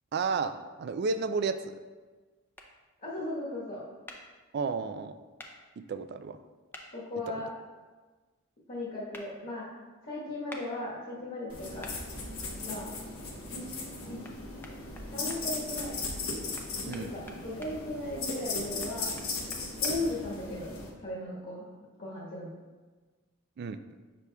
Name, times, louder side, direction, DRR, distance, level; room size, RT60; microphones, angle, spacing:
voice 1, 0.1-1.8 4.5-5.1 5.8-6.4 16.9-17.1 23.6-23.8, right 4 dB, 50° right, 10 dB, 0.3 m, -32 dB
sound 1, 2.5-2.7 4.1-4.2 5.4-5.5 6.7-6.9 9.1-9.3 10.5-10.6 11.8-12.0 14.2-14.3 14.6-15.4 16.5-17.7 18.8-19.9, left 1 dB, 10° left, 0.5 m, -46 dB
voice 2, 3.0-3.8 6.9-7.5 8.7-9.7 10.0-11.9 12.6-12.9 13.5-14.2 15.1-16.0 16.8-19.1 19.8-21.6 22.0-22.5, left 1 dB, 50° left, -7 dB, 1.2 m, -37 dB
sound 2, 11.5-20.9, left 3 dB, 85° left, 1.0 m, -37 dB
6.9 x 6.1 x 2.2 m, 1.3 s
head